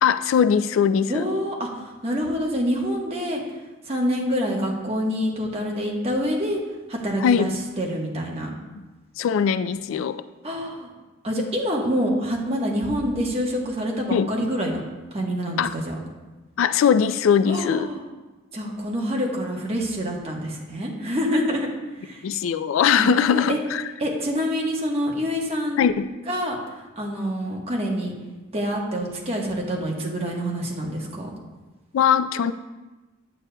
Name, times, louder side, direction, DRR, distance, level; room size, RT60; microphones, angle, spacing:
voice 1, 0.0-1.3 7.2-7.6 9.2-10.2 14.1-14.3 15.6-15.7 16.6-17.9 22.2-23.8 25.8-26.1 31.9-32.5, left 7 dB, 85° left, 13 dB, 0.3 m, -20 dB
voice 2, 1.1-3.4 3.8-6.6 6.9-7.5 7.8-8.5 10.4-10.9 11.2-14.8 15.1-15.9 17.5-18.0 18.5-21.7 22.0-22.2 23.0-23.6 24.0-25.8 26.3-26.6 27.0-28.1 28.5-31.3, equal, 30° right, -1 dB, 1.2 m, -26 dB
8.8 x 8.4 x 2.2 m, 1.2 s
head